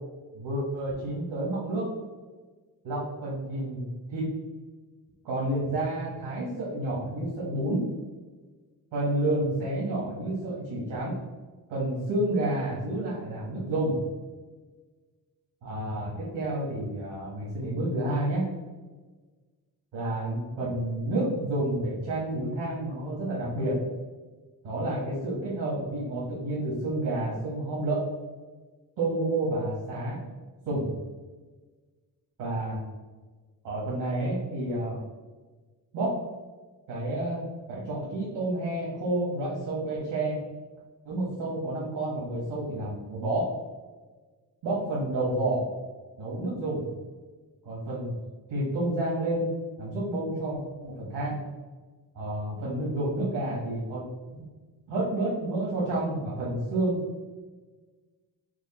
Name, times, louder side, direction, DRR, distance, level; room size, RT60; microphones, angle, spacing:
voice 1, 0.3-1.9 2.8-4.3 5.2-7.8 8.9-11.1 11.7-14.0 15.6-18.4 19.9-23.8 24.6-28.0 29.0-30.2 30.6-30.9 32.4-32.8 33.6-35.0 35.9-36.1 36.9-40.4 41.0-43.5 44.6-45.7 46.2-46.8 47.6-48.1 48.5-49.5 49.8-51.4 52.1-54.0 54.3-54.4 54.9-57.0, right 1 dB, 80° right, -6 dB, 1.5 m, -30 dB
4.8 x 2.1 x 4.2 m, 1.3 s
cardioid pair, 85°, 41 cm